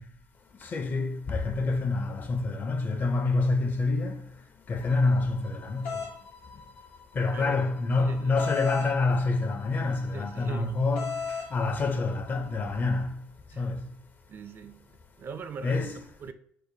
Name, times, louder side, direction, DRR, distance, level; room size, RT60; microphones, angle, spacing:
voice 1, 0.6-4.2 4.7-6.0 7.1-11.2 11.5-13.2 13.6-13.8 15.6-16.0, left 3 dB, 40° left, 0.5 m, -27 dB
sound 1, 4.8-13.2, left 4 dB, 60° left, 1.1 m, -54 dB
sound 2, 5.8-6.1 8.4-8.9 10.9-11.5, left 5 dB, 85° left, 0.6 m, -33 dB
voice 2, 8.0-8.3 10.1-10.8 13.5-13.7 14.3-14.9 15.2-16.3, right 6 dB, 45° right, 0.4 m, -41 dB
4.4 x 2.1 x 2.6 m
hypercardioid pair, 60°, 5 cm